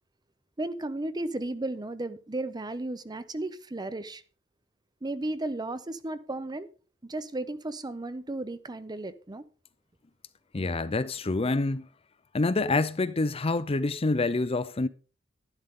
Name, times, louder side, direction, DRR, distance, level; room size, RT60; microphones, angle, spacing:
voice 1, 0.6-4.2 5.0-6.7 7.0-9.4, right 2 dB, 20° right, 0.7 m, -34 dB
voice 2, 10.5-11.9 12.3-14.9, left 3 dB, 30° left, 0.5 m, -27 dB
12.0 x 11.5 x 3.7 m
head